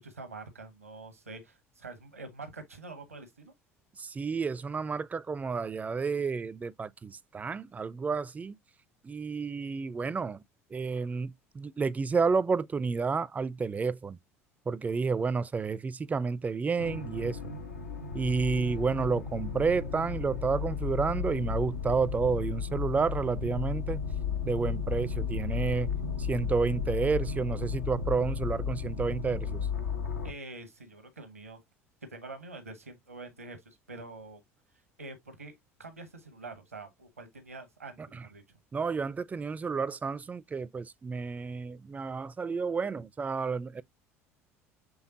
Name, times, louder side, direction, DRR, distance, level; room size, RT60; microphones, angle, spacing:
voice 1, 0.0-3.5 30.2-31.6 32.1-34.4 35.0-38.4, right 3 dB, 90° right, 1.0 m, -46 dB
voice 2, 4.0-8.6 9.0-10.4 10.7-14.2 14.7-17.4 18.1-24.0 24.4-25.9 26.2-29.7 38.7-43.8, right 4 dB, 20° right, 0.4 m, -30 dB
sound 1, 16.8-30.3, left 6 dB, 85° left, 0.7 m, -34 dB
6.2 x 3.3 x 2.6 m
figure-of-eight pair, 65°, 8 cm